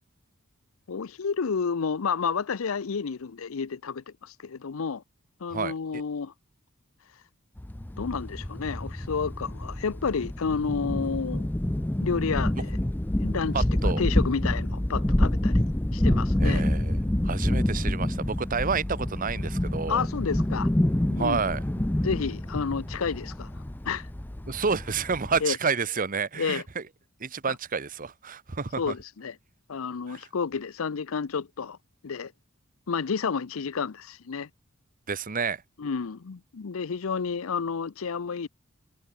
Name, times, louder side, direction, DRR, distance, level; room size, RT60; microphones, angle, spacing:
voice 1, 0.9-5.0 5.4-6.3 8.0-11.5 12.0-12.8 13.2-16.6 19.9-20.7 21.1-21.4 22.0-23.5 23.9-24.1 25.4-25.6 26.4-26.6 27.5-27.6 28.8-29.4 29.7-31.8 32.0-32.3 32.9-34.5 35.8-38.5, left 5 dB, 75° left, 0.6 m, -30 dB
sound 1, 7.6-25.4, left 1 dB, 10° left, 0.5 m, -27 dB
voice 2, 13.5-14.0 16.4-20.1 21.2-21.6 24.5-26.8 27.2-28.9 30.1-30.2 35.1-35.6, right 5 dB, 40° right, 1.0 m, -29 dB
head